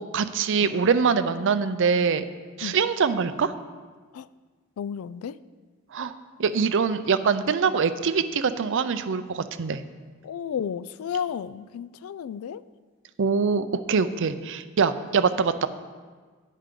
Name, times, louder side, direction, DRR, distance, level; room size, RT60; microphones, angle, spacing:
voice 1, 0.0-2.3 2.6-3.5 5.9-6.1 6.4-9.8 13.2-15.7, right 5 dB, 60° right, 12 dB, 0.5 m, -24 dB
voice 2, 4.8-5.4 10.2-12.6, left 8 dB, 75° left, 17 dB, 0.3 m, -32 dB
10.0 x 9.2 x 3.8 m, 1.5 s
head